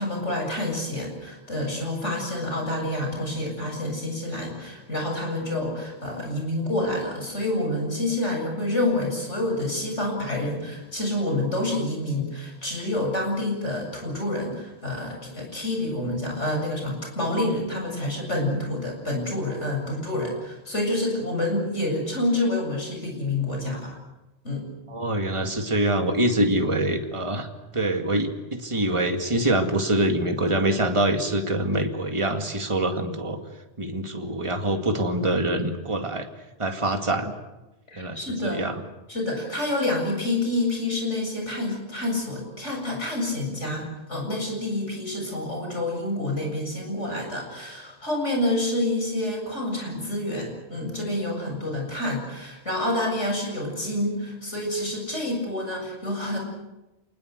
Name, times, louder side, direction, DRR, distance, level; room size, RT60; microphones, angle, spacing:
voice 1, 0.0-24.0 24.4-24.7 37.9-38.7 39.1-56.4, left 1 dB, 85° left, 2 dB, 7.9 m, -28 dB
voice 2, 24.9-27.5 27.7-33.4 33.8-36.3 36.6-37.4 38.0-38.7, right 1 dB, 25° right, 4 dB, 2.2 m, -25 dB
28.5 x 20.0 x 8.1 m, 1.0 s
omnidirectional pair, 1.2 m